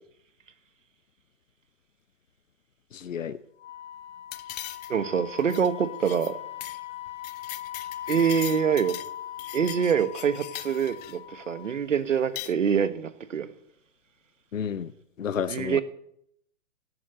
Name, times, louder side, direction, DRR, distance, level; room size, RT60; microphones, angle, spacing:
voice 1, 2.9-3.4 14.5-14.9 15.2-15.8, left 7 dB, 80° left, 0.9 m, -31 dB
Wind instrument woodwind instrument, 3.6-11.8, left 12 dB, 65° left, 2.0 m, -40 dB
sound 1, 4.3-5.1 5.4-5.7 6.0-6.3 6.6-6.8 7.1-9.1 9.4-11.2 12.1-12.5, left 16 dB, 35° left, 0.6 m, -40 dB
voice 2, 4.9-6.4 8.1-9.0 9.5-13.5 15.5-15.8, right 7 dB, 75° right, 1.6 m, -25 dB
17.0 x 7.8 x 8.0 m
hypercardioid pair, 125°, 38 cm